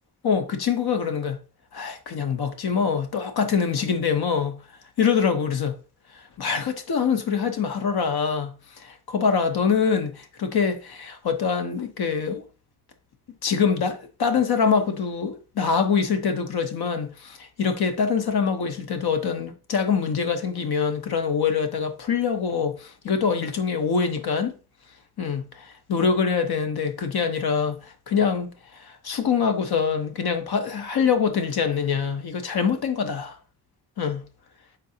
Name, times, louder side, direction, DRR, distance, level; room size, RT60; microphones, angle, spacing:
voice 1, 0.2-1.4 1.7-4.6 5.0-5.8 6.1-12.4 13.4-24.5 25.2-33.4 34.0-34.3, left 6 dB, 70° left, 0.9 m, -24 dB
4.7 x 4.0 x 2.7 m
cardioid pair, 75°, 39 cm